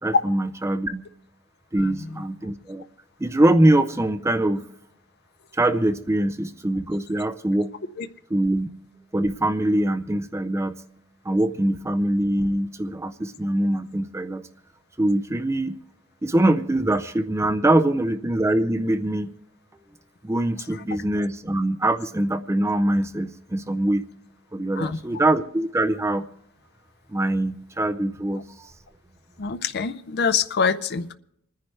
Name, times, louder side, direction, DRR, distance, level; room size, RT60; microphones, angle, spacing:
voice 1, 0.0-1.1 1.7-2.8 3.2-4.6 5.5-7.7 8.3-8.7 9.1-10.8 11.2-14.5 15.0-15.8 16.2-19.3 20.2-24.0 24.5-26.2 27.1-28.7, right 1 dB, 15° right, 10 dB, 0.4 m, -23 dB
voice 2, 1.8-2.2 8.0-8.1 20.7-20.8 24.8-25.0 29.4-31.1, left 6 dB, 50° left, 11 dB, 0.5 m, -26 dB
28.0 x 10.5 x 3.3 m, 0.74 s
head